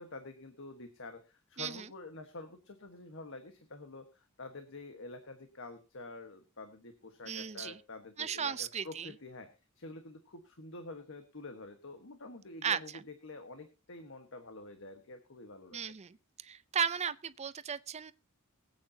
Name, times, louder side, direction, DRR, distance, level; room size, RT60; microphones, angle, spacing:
voice 1, 0.0-9.5 9.7-12.9 13.2-15.9, left 2 dB, 65° left, 1.4 m, -48 dB
voice 2, 1.6-1.9 7.3-7.8 8.2-9.1 12.6-13.0 15.7-16.2 16.4-18.1, right 7 dB, 30° right, 0.5 m, -35 dB
23.0 x 8.6 x 2.8 m
head